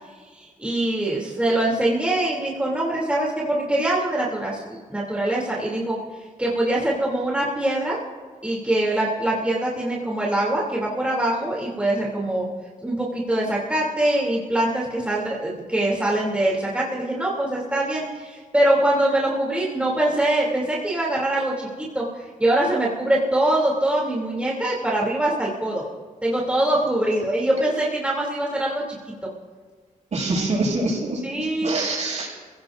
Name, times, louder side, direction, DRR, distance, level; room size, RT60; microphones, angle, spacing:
voice 1, 0.3-6.0 6.4-8.0 8.4-12.5 12.8-25.8 26.2-28.8 31.2-31.8, right 1 dB, 10° right, -5 dB, 3.1 m, -23 dB
voice 2, 30.1-32.3, right 2 dB, 60° right, -3 dB, 6.7 m, -25 dB
30.0 x 16.5 x 2.7 m, 1.4 s
wide cardioid pair, 100°, 13 cm